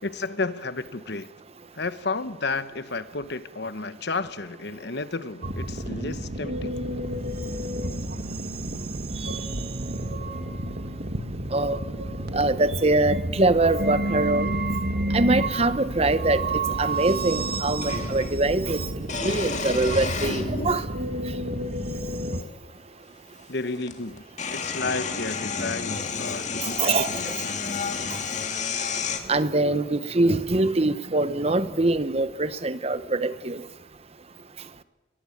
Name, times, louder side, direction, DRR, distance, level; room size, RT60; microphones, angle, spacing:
voice 1, 0.0-1.3 1.7-6.7 23.5-24.2 24.5-27.3, left 3 dB, 55° left, 1.1 m, -32 dB
sound 1, 5.4-22.4, right 1 dB, 50° right, 1.9 m, -30 dB
voice 2, 12.3-14.5 15.1-16.5 16.8-20.8 26.8-27.3 29.3-33.6, right 2 dB, 30° right, 0.8 m, -23 dB
sound 2, 16.1-16.2 17.8-18.3 19.0-20.9 21.8-21.9 23.4-23.5 23.8-29.2, left 5 dB, 40° left, 2.1 m, -31 dB
22.5 x 20.0 x 8.6 m
head